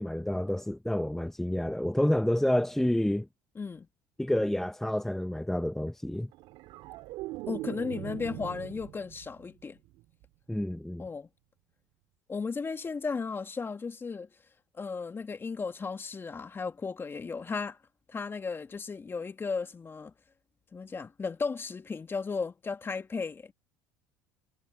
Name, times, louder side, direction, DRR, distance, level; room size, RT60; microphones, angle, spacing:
voice 1, 0.0-3.3 4.2-6.3 10.5-11.0, left 1 dB, 5° left, 0.8 m, -29 dB
voice 2, 3.6-3.9 7.5-9.8 11.0-11.3 12.3-14.3 14.8-17.8 18.1-20.1 20.7-23.5, left 4 dB, 25° left, 2.0 m, -35 dB
sound 1, 6.3-9.5 9.8-10.2, right 19 dB, 65° right, 3.0 m, -41 dB
hypercardioid pair, 75°, 9 cm